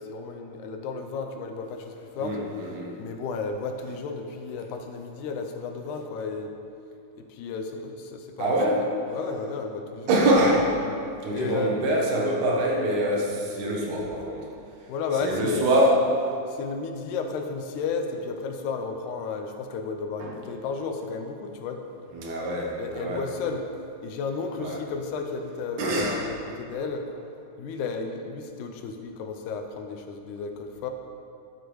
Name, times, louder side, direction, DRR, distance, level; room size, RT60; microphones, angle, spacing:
voice 1, 0.0-2.4 3.0-6.5 7.3-8.6 9.1-10.3 11.3-11.8 14.9-15.7 16.5-21.8 22.8-23.6 24.0-27.1 27.6-30.9, left 4 dB, 85° left, 4 dB, 2.1 m, -33 dB
voice 2, 2.2-3.0 8.4-8.9 10.1-10.7 11.2-14.5 15.2-16.0 20.2-20.3 22.1-23.3 24.6-24.8 25.8-26.3, right 1 dB, 90° right, -2 dB, 2.7 m, -24 dB
11.5 x 6.6 x 3.1 m, 2.6 s
omnidirectional pair, 3.4 m